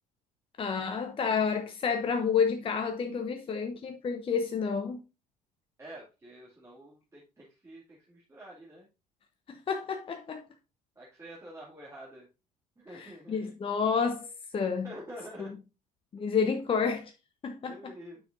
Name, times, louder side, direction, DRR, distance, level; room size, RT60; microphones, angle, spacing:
voice 1, 0.6-5.0 9.5-10.4 13.0-14.9 16.1-17.1 17.4-17.9, left 6 dB, 25° left, 0.8 m, -30 dB
voice 2, 5.8-8.9 11.0-12.3 12.8-13.5 14.6-15.5 17.6-18.2, equal, 15° right, 2.3 m, -47 dB
9.2 x 5.9 x 2.6 m
figure-of-eight pair, 60°, 20 cm